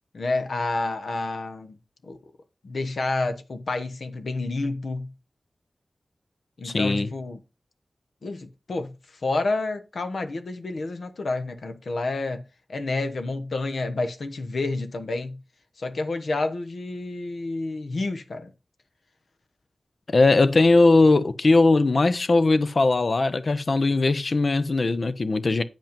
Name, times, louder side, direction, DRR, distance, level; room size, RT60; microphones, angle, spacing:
voice 1, 0.1-1.8 2.0-2.2 2.6-5.1 6.6-7.4 8.2-12.4 12.7-15.4 15.8-18.5, left 2 dB, 80° left, 1.1 m, -29 dB
voice 2, 6.6-7.1 20.1-25.6, left 3 dB, 60° left, 0.7 m, -19 dB
8.9 x 5.3 x 5.2 m
wide cardioid pair, 65°, 0 cm